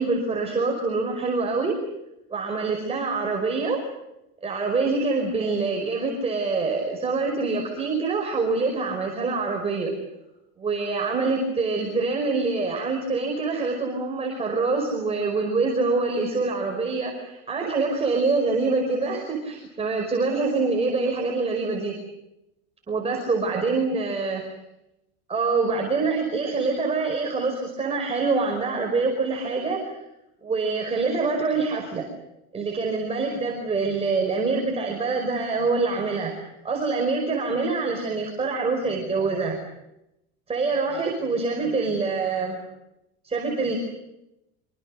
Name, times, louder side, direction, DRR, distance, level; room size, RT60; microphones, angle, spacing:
voice 1, 0.0-1.8 2.3-3.8 4.4-9.9 10.6-21.9 22.9-24.4 25.3-30.0 30.4-32.1 32.5-36.4 36.6-39.6 40.5-42.6 43.2-43.8, right 3 dB, 20° right, 1 dB, 5.4 m, -25 dB
26.0 x 25.0 x 6.6 m, 0.89 s
supercardioid pair, 135°, 33 cm